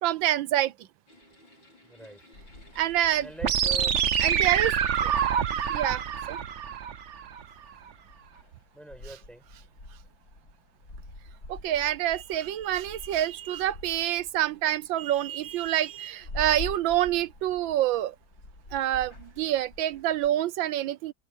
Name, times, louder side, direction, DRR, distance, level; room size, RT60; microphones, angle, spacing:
voice 1, 0.0-0.7 2.8-3.3 4.2-4.7 5.7-6.0 6.3-6.4 11.5-18.1 18.7-21.1, right 12 dB, 75° right, 1.5 m, -27 dB
sound 1, 1.1-6.7, left 1 dB, 70° left, 6.9 m, -57 dB
voice 2, 1.9-2.2 3.2-4.0 5.0-5.1 8.7-9.5, right 1 dB, ahead, 5.5 m, -42 dB
sound 2, 2.3-20.3, left 2 dB, 45° left, 8.1 m, -47 dB
sound 3, 3.4-7.4, right 8 dB, 50° right, 0.9 m, -26 dB
omnidirectional pair, 2.2 m